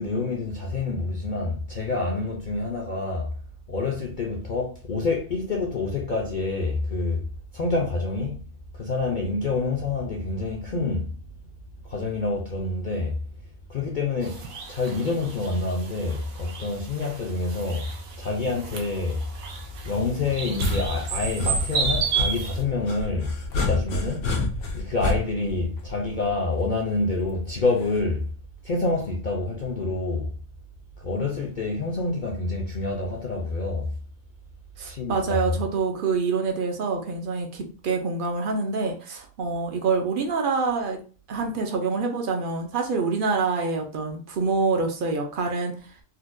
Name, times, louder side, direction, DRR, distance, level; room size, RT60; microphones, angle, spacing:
voice 1, 0.0-3.3 3.7-7.2 7.5-8.5 8.7-11.1 11.8-13.2 13.7-19.3 19.8-24.3 24.7-28.3 28.6-30.3 31.0-33.9 34.8-35.5, left 3 dB, 60° left, 0.5 m, -27 dB
sound 1, 14.2-22.6, right 6 dB, 80° right, 1.1 m, -33 dB
sound 2, 20.4-26.5 27.9-28.3, left 2 dB, 85° left, 1.2 m, -29 dB
voice 2, 34.8-41.0 41.3-45.7, right 4 dB, 60° right, 0.5 m, -26 dB
4.1 x 2.2 x 2.5 m
omnidirectional pair, 1.4 m